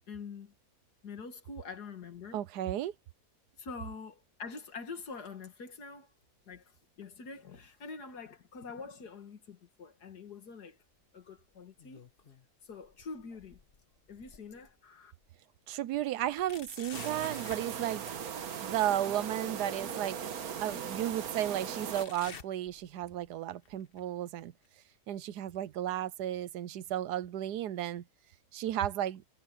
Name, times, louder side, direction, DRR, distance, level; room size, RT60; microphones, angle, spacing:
voice 1, 0.1-0.5 1.0-2.4 3.6-6.1 6.5-6.6 7.0-10.8 11.1-12.0 12.7-13.6 14.1-15.1, left 4 dB, 80° left, 2.4 m, -45 dB
voice 2, 2.3-2.9 15.7-18.0 18.6-20.2 20.5-24.5 25.1-28.0 28.5-29.2, right 12 dB, 90° right, 1.3 m, -34 dB
sound 1, 11.5-12.5 12.8-14.7 15.2-15.3 16.3-17.7 19.4-19.5 20.4-20.5 21.9-23.3 23.6-24.0 24.6-24.7 25.6-25.7, left 5 dB, 40° left, 1.3 m, -50 dB
sound 2, 16.9-22.1, right 7 dB, 70° right, 1.6 m, -39 dB
omnidirectional pair, 1.7 m